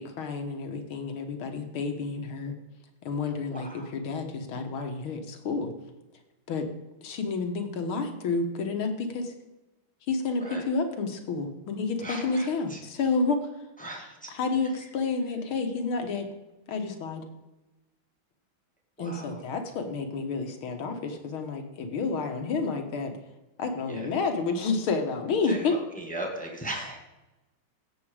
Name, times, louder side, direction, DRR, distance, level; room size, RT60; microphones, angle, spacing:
voice 1, 0.0-2.6 3.0-3.7 3.9-5.7 6.5-6.7 7.0-9.3 10.1-13.7 14.3-16.3 16.7-17.2 19.0-23.2 23.6-25.7, left 4 dB, 85° left, 5 dB, 2.2 m, -30 dB
voice 2, 3.5-3.9 10.4-10.7 12.0-12.8 13.8-14.3 19.0-19.4 23.9-24.1 25.4-27.0, right 1 dB, 5° left, 1 dB, 1.6 m, -38 dB
16.5 x 7.3 x 4.9 m, 1.1 s
omnidirectional pair, 2.2 m